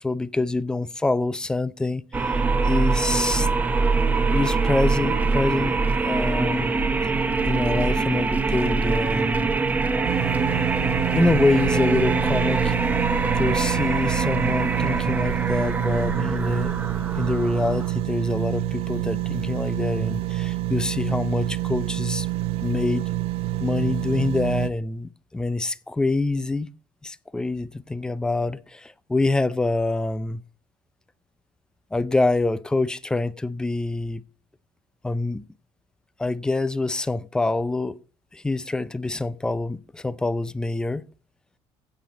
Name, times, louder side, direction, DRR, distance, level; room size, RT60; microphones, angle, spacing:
voice 1, 0.0-3.5 4.3-6.7 7.5-9.5 11.1-12.8 13.3-16.7 17.2-22.3 22.6-23.1 23.6-26.7 27.0-30.4 31.9-34.2 35.0-35.4 36.2-38.0 38.3-41.0, left 2 dB, 5° left, 0.4 m, -25 dB
sound 1, 2.1-18.0, right 4 dB, 15° right, 0.8 m, -24 dB
sound 2, 10.0-24.7, right 14 dB, 65° right, 0.7 m, -27 dB
15.5 x 6.0 x 4.0 m
cardioid pair, 165°, 10 cm